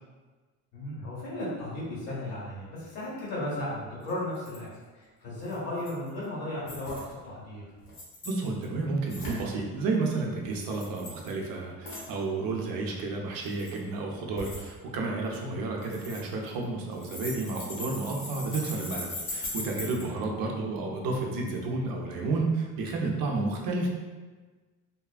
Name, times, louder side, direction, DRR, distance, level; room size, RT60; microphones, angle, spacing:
voice 1, 0.7-4.7 4.9-7.0 7.2-7.6 15.4-15.6 20.0-20.3, left 1 dB, 85° left, -8 dB, 1.3 m, -35 dB
sound 1, 4.1-4.2 4.4-4.6 5.5-6.1 6.7-7.0 7.8-8.6 9.1-9.5 10.6-11.3 11.9-12.1 13.3-13.8 14.4-14.6 15.8-16.6 16.9-20.0, left 2 dB, 65° left, 1.1 m, -39 dB
voice 2, 8.2-23.9, right 3 dB, 80° right, 0 dB, 0.6 m, -31 dB
2.7 x 2.3 x 2.4 m, 1.3 s
cardioid pair, 110°, 34 cm